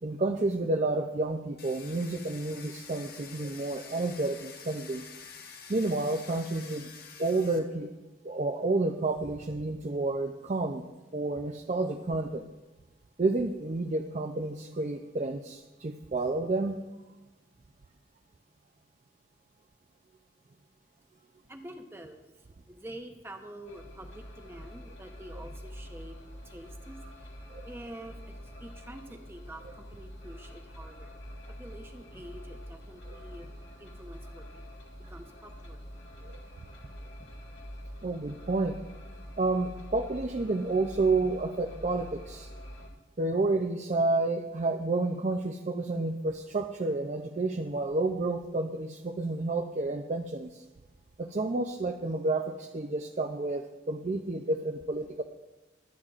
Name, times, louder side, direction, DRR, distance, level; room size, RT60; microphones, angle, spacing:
voice 1, 0.0-5.0 5.7-6.9 7.2-7.9 8.2-10.9 11.1-12.4 13.2-16.8 27.5-27.6 36.2-36.4 38.0-38.8 39.4-42.5 43.2-50.6 51.2-55.2, right 2 dB, 35° right, 5 dB, 0.4 m, -30 dB
Domestic sounds home sounds, 1.6-7.6, left 6 dB, 50° left, 1.3 m, -48 dB
voice 2, 21.5-31.2 31.5-34.7 35.1-35.8 37.2-37.3, right 1 dB, 10° right, 5 dB, 0.8 m, -47 dB
sound 1, 23.6-42.9, equal, 65° left, 1.9 m, -46 dB
23.0 x 9.1 x 2.5 m, 1.1 s
head